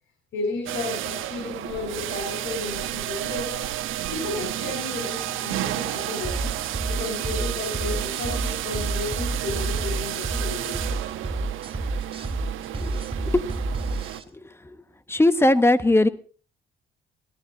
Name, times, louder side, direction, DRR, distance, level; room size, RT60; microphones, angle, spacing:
voice 1, 0.3-3.7 4.1-11.0, left 3 dB, 80° left, 3 dB, 4.5 m, -33 dB
sound 1, 0.7-14.2, right 13 dB, 85° right, 1.3 m, -31 dB
sound 2, 6.2-14.2, right 3 dB, 30° right, 2.1 m, -29 dB
voice 2, 15.1-16.1, left 2 dB, 10° left, 12 dB, 1.2 m, -18 dB
18.0 x 13.0 x 4.1 m, 0.40 s
cardioid pair, 90°, 20 cm